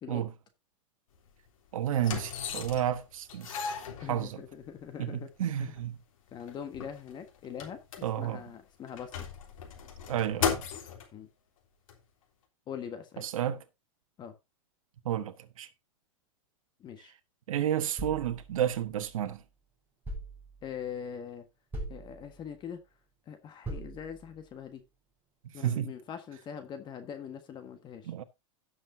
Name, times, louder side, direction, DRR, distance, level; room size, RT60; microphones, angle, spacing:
sound 1, 1.2-1.3 2.0-3.0 3.3-4.6 5.4-5.5 5.8-5.9 6.3-8.4 8.9-11.1 11.9-12.0, left 7 dB, 75° left, 3.3 m, -36 dB
voice 1, 1.7-3.6 4.0-4.4 5.0-5.9 8.0-8.4 10.1-10.6 13.2-13.6 15.0-15.7 17.5-19.4 25.6-25.9 28.1-28.2, right 10 dB, 75° right, 1.2 m, -31 dB
voice 2, 4.0-5.3 5.6-5.7 6.3-9.1 11.1-11.3 12.7-13.3 14.2-14.3 16.8-17.1 20.6-21.5 21.9-22.8 23.3-24.8 25.5-28.1, left 8 dB, 25° left, 1.5 m, -42 dB
sound 2, 18.0-19.4 20.1-20.9 21.7-22.6 23.7-24.5, right 1 dB, 10° right, 5.4 m, -42 dB
17.0 x 6.4 x 2.7 m
hypercardioid pair, 135°, 18 cm